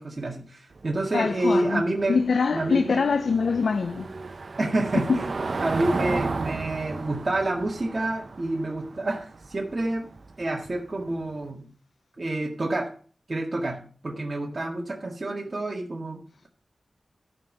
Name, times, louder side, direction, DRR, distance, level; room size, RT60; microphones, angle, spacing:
voice 1, 0.0-2.2 2.5-3.1 4.6-5.3 5.6-10.1 10.4-11.7 12.2-12.9 13.3-16.5, right 2 dB, 40° right, 1.8 m, -28 dB
Car passing by / Engine, 0.7-11.4, right 3 dB, 60° right, 0.7 m, -34 dB
voice 2, 1.1-1.8 2.1-4.1, left 5 dB, 80° left, 0.5 m, -24 dB
13.0 x 5.3 x 5.4 m
wide cardioid pair, 75°, 0 cm